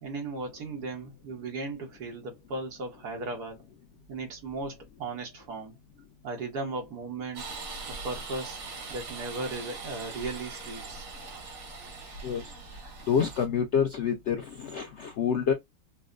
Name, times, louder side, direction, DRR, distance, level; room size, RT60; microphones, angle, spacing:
voice 1, 0.0-3.6 4.1-5.7 6.2-7.5 7.9-8.6 8.9-11.0, right 3 dB, 60° right, 1.6 m, -36 dB
sound 1, 7.3-13.5, right 4 dB, 85° right, 1.9 m, -41 dB
voice 2, 13.1-15.5, left 7 dB, 80° left, 0.6 m, -27 dB
5.3 x 2.1 x 2.4 m
omnidirectional pair, 1.9 m